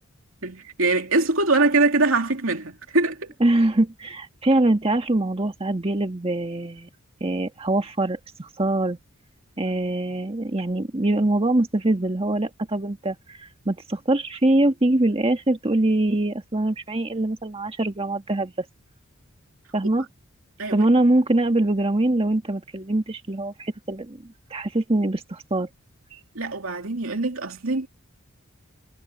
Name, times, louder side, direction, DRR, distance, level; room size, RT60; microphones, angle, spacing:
voice 1, 0.4-3.3 20.6-20.9 26.3-27.9, right 3 dB, 75° right, 2.8 m, -23 dB
voice 2, 3.4-6.9 7.2-9.0 9.6-18.6 19.7-20.1 20.7-24.2 24.5-25.7 26.1-26.2, right 2 dB, 30° right, 1.6 m, -23 dB
head